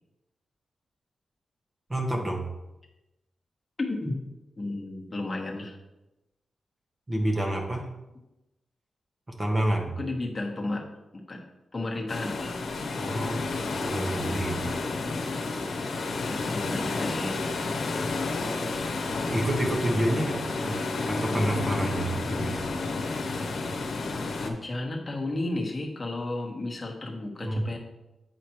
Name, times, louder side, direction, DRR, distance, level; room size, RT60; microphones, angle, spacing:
voice 1, 1.9-2.4 7.1-7.8 9.4-9.9 13.0-13.4 13.8-14.6 19.3-20.8 21.1-22.6 27.4-27.6, right 1 dB, 25° right, 1 dB, 1.3 m, -28 dB
voice 2, 4.6-5.8 10.0-10.8 11.3-11.4 11.7-12.7 16.4-17.4 24.4-27.8, left 2 dB, 25° left, 0 dB, 1.3 m, -33 dB
sound 1, 12.1-24.5, left 3 dB, 75° left, 0.9 m, -31 dB
8.5 x 5.1 x 3.0 m, 0.98 s
wide cardioid pair, 95°, 0 cm